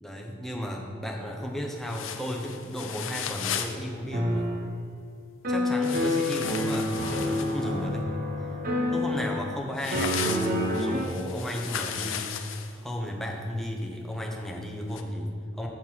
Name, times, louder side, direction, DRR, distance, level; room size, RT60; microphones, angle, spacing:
voice 1, 0.0-4.5 5.5-8.1 8.9-12.3 12.7-15.7, equal, ahead, -1 dB, 0.8 m, -34 dB
sound 1, 1.9-3.8 5.8-7.6 9.8-12.7 14.9-15.0, left 8 dB, 80° left, 0.5 m, -35 dB
sound 2, 4.1-4.7 5.4-9.6 9.9-11.1, left 1 dB, 50° right, 0.8 m, -28 dB
7.4 x 4.2 x 6.1 m, 2.2 s
head